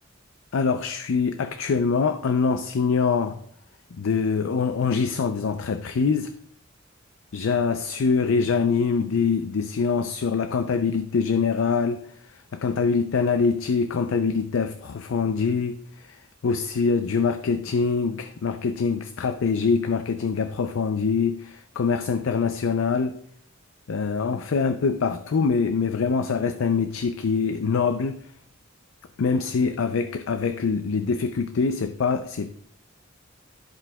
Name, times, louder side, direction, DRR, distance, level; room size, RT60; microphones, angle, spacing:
voice 1, 0.5-3.4 4.0-6.3 7.3-23.2 23.9-28.3 29.2-32.5, left 5 dB, 90° left, 0.4 m, -24 dB
14.0 x 4.9 x 2.2 m
head